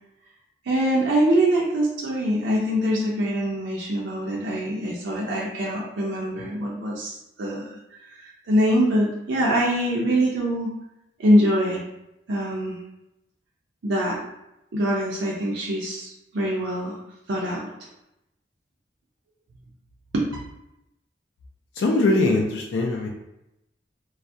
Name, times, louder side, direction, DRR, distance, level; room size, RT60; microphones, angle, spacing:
voice 1, 0.7-7.7 8.0-10.7 11.2-11.8 12.3-12.8 13.8-14.2 14.7-17.0 17.3-17.7 20.1-20.2, equal, 85° right, -4 dB, 0.5 m, -23 dB
voice 2, 21.8-23.1, left 2 dB, 75° left, 0 dB, 0.4 m, -21 dB
2.3 x 2.1 x 2.6 m, 0.88 s
head